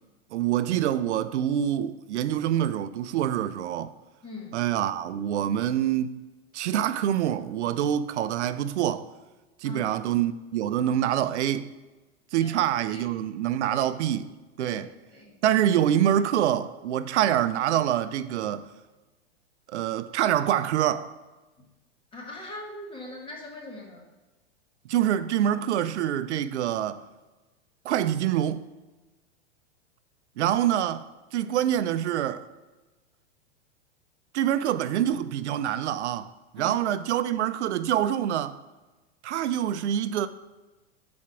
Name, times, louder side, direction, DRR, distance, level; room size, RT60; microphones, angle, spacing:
voice 1, 0.3-3.9 4.5-6.2 6.5-9.1 9.6-11.7 12.3-14.3 14.6-14.9 15.4-18.7 19.7-21.1 24.8-27.0 27.8-28.7 30.4-32.4 34.3-38.6 39.2-40.3, right 11 dB, 85° right, 0.5 m, -26 dB
voice 2, 4.2-4.6 9.6-10.0 12.4-13.0 13.7-13.8 14.6-14.8 15.1-15.6 21.6-21.7 22.1-24.1 31.4-31.5 36.6-36.8, left 2 dB, 15° left, 1.4 m, -42 dB
5.8 x 4.3 x 4.8 m
hypercardioid pair, 130°, 34 cm